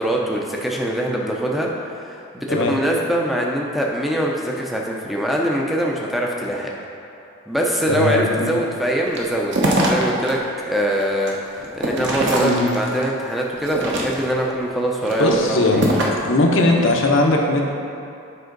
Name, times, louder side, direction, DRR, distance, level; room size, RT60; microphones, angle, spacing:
voice 1, 0.0-6.7 7.5-10.4 10.7-16.1, right 1 dB, ahead, -2 dB, 0.5 m, -23 dB
voice 2, 7.9-8.5 12.4-12.7 15.2-15.9 16.2-17.7, left 2 dB, 65° left, 1 dB, 0.8 m, -18 dB
sound 1, 9.1-10.3 10.7-13.0 13.6-14.4 14.9-16.3, right 1 dB, 55° right, 0.9 m, -23 dB
7.7 x 5.4 x 3.9 m, 2.7 s
head